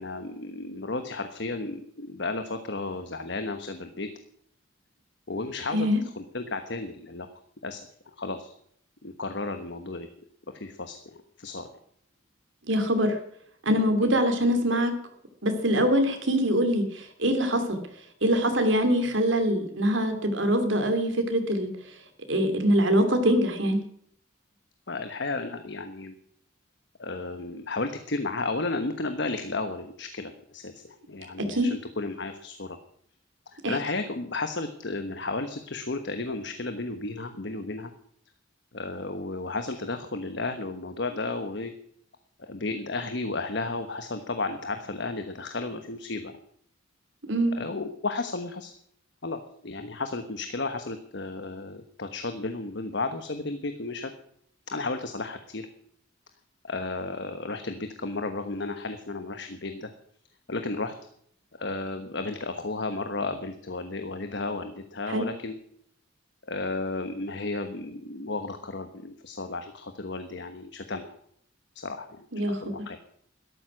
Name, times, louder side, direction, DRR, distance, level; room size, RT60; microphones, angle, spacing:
voice 1, 0.0-4.1 5.3-7.3 7.6-7.8 8.2-8.5 9.0-10.1 10.5-11.7 14.0-14.1 24.9-26.1 27.0-32.8 33.5-37.9 38.7-41.7 42.4-46.3 47.6-48.7 49.2-54.1 54.7-55.7 56.6-59.9 60.5-60.9 61.6-65.5 66.5-71.1 71.7-73.0, left 3 dB, 60° left, 7 dB, 1.2 m, -33 dB
voice 2, 12.7-13.2 13.6-14.9 15.4-17.8 18.2-21.7 22.3-23.8 31.5-31.7 33.6-33.8 47.3-47.6 65.1-65.3 72.3-72.6, equal, 70° right, 6 dB, 3.0 m, -24 dB
13.0 x 12.5 x 6.3 m, 0.65 s
head